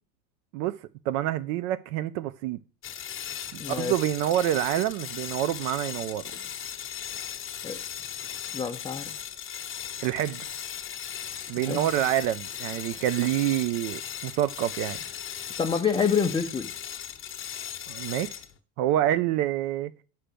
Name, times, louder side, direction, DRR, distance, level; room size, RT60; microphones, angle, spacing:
voice 1, 1.1-2.6 3.5-6.2 10.0-10.5 11.5-15.0 17.9-18.4 18.8-19.9, right 13 dB, 60° right, 0.6 m, -27 dB
sound 1, 2.8-18.6, left 9 dB, 25° left, 1.1 m, -37 dB
voice 2, 3.6-3.9 7.6-7.8 8.5-9.1 11.6-11.8 15.6-16.7, left 6 dB, 10° left, 0.5 m, -27 dB
7.6 x 5.7 x 6.8 m
supercardioid pair, 125°, 47 cm